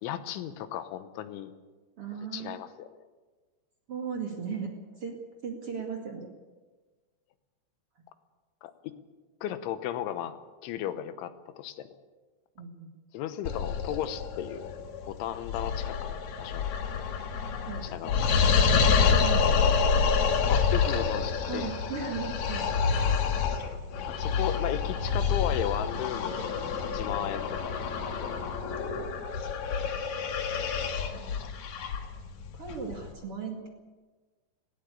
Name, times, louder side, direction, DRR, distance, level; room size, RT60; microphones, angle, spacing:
voice 1, 0.0-1.5 2.3-2.9 8.6-8.9 9.4-11.9 13.1-14.7 15.1-16.7 17.0-17.1 17.8-18.2 20.5-21.7 24.1-28.4 31.4-31.5, left 11 dB, 90° left, 11 dB, 3.5 m, -35 dB
voice 2, 2.0-2.6 3.9-4.7 5.0-5.2 5.4-6.3 12.6-12.9 17.6-18.1 18.8-19.7 20.2-20.5 21.5-22.7 28.8-29.3 31.1-31.3 32.5-33.7, right 6 dB, 40° right, 1 dB, 2.2 m, -37 dB
sound 1, 13.5-33.1, left 6 dB, 60° left, 2.2 m, -28 dB
19.0 x 17.0 x 8.4 m, 1.3 s
omnidirectional pair, 5.3 m